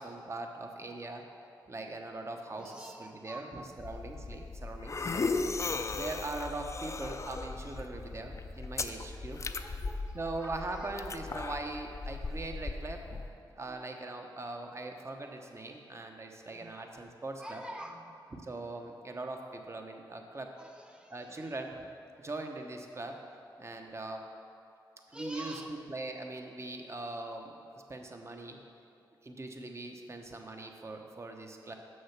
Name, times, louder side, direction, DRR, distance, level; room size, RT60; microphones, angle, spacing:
voice 1, 0.0-1.2 1.7-5.3 5.9-9.4 10.1-17.6 18.4-20.5 21.1-21.9 22.2-23.2 23.6-24.3 25.1-25.5 25.9-27.6 27.9-28.6 29.2-31.8, right 2 dB, 35° right, 3 dB, 0.9 m, -41 dB
voice 2, 0.9-1.7 2.6-4.0 4.8-6.2 7.2-7.3 7.8-8.0 9.4-11.6 13.1-13.3 13.6-13.8 16.5-16.7 17.4-18.1 20.6-21.6 25.1-25.8, right 1 dB, 10° right, 4 dB, 0.9 m, -49 dB
sound 1, 3.8-13.3, left 3 dB, 35° left, 0.4 m, -37 dB
7.0 x 6.3 x 5.8 m, 2.6 s
cardioid pair, 75°, 8 cm